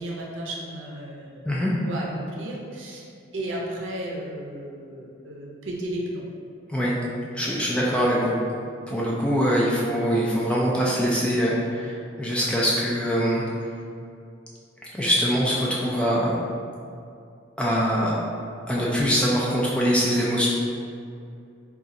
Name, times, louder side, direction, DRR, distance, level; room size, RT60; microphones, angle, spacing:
voice 1, 0.0-3.0 3.3-6.3, right 1 dB, 75° right, -2 dB, 0.6 m, -34 dB
voice 2, 7.3-8.3 8.9-13.4 14.9-16.4 17.6-18.2 18.7-20.5, equal, 5° left, -5 dB, 0.3 m, -23 dB
2.6 x 2.4 x 3.9 m, 2.5 s
head